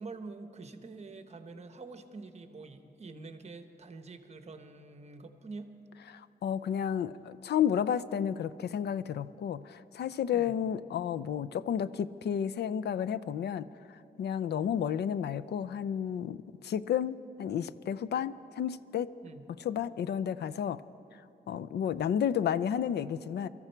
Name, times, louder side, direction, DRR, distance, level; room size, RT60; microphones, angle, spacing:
voice 1, 0.0-5.7 10.3-10.5 19.2-19.4, right 3 dB, 40° right, 8 dB, 0.9 m, -46 dB
voice 2, 6.1-19.1 19.6-20.8 21.5-23.5, left 9 dB, 85° left, 15 dB, 0.4 m, -32 dB
23.5 x 13.5 x 4.5 m, 3.0 s
wide cardioid pair, 155°, 17 cm